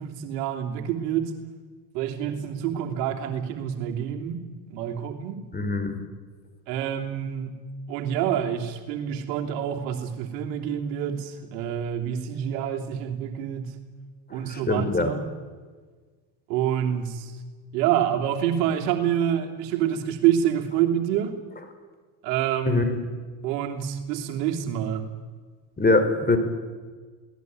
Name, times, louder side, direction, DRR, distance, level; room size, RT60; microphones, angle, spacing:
voice 1, 0.0-1.3 1.9-4.4 4.7-5.4 6.7-7.5 7.9-13.7 14.3-15.3 16.5-17.4 17.7-21.3 22.2-22.8 23.4-25.1, right 10 dB, 75° right, 4 dB, 3.2 m, -27 dB
voice 2, 5.5-6.0 14.3-15.1 22.6-23.0 25.8-26.4, left 3 dB, 20° left, 8 dB, 4.6 m, -23 dB
28.5 x 19.0 x 9.5 m, 1.5 s
hypercardioid pair, 90°, 50 cm